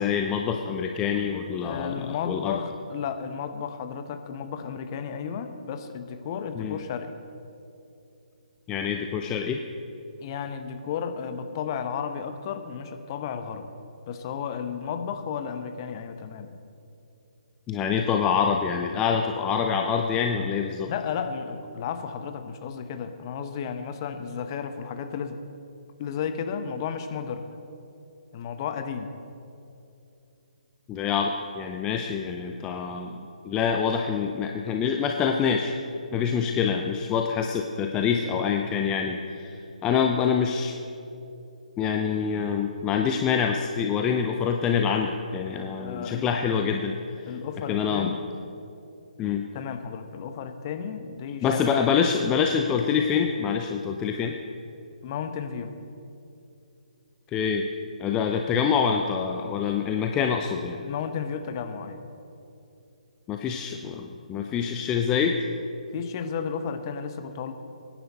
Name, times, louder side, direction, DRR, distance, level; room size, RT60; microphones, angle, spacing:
voice 1, 0.0-2.6 6.6-6.8 8.7-9.6 17.7-20.9 30.9-33.1 33.4-35.7 36.1-40.7 41.8-46.9 47.2-47.3 47.7-48.1 49.2-49.4 51.4-54.4 57.3-57.7 58.0-60.8 63.3-65.4, left 7 dB, 15° left, 3 dB, 0.6 m, -26 dB
voice 2, 1.6-7.1 10.2-13.7 14.1-16.6 20.9-25.4 26.0-27.5 28.3-29.1 45.7-46.7 47.3-48.3 49.5-51.6 55.0-55.7 60.8-62.0 65.9-67.5, left 7 dB, 30° left, 8 dB, 1.0 m, -33 dB
24.0 x 10.5 x 4.2 m, 2.7 s
figure-of-eight pair, 140°, 4 cm